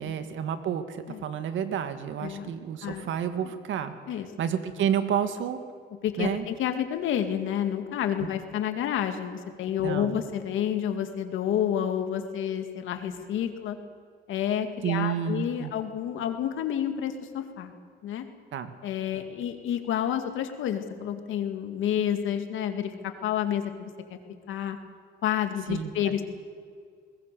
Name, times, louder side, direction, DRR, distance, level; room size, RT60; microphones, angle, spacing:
voice 1, 0.0-3.9 4.4-5.6 6.2-6.4 9.8-10.2 14.8-15.7 18.5-18.7 25.7-26.2, right 8 dB, 75° right, 9 dB, 1.9 m, -30 dB
voice 2, 2.2-3.1 3.4-3.5 4.1-4.3 6.0-13.8 14.3-17.7 18.0-18.2 18.8-23.9 24.5-24.8 25.2-26.2, left 9 dB, 85° left, 7 dB, 2.2 m, -29 dB
23.0 x 20.5 x 6.9 m, 2.1 s
cardioid pair, 90°, 20 cm